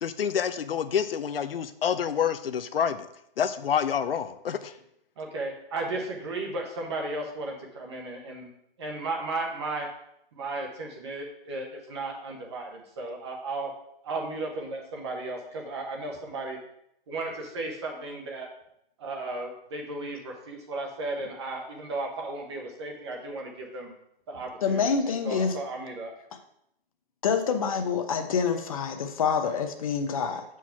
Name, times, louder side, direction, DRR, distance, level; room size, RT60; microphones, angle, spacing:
voice 1, 0.0-3.1 3.4-4.7, left 8 dB, 75° left, 12 dB, 0.7 m, -28 dB
voice 2, 5.2-8.5 8.8-9.9 10.3-13.7 14.0-16.6 17.1-18.5 19.0-23.9 24.3-24.8 25.2-26.1, right 2 dB, 30° right, 1 dB, 1.0 m, -35 dB
voice 3, 24.6-25.6 27.2-30.4, left 6 dB, 35° left, 6 dB, 0.8 m, -26 dB
6.0 x 4.7 x 5.7 m, 0.75 s
hypercardioid pair, 165°, 29 cm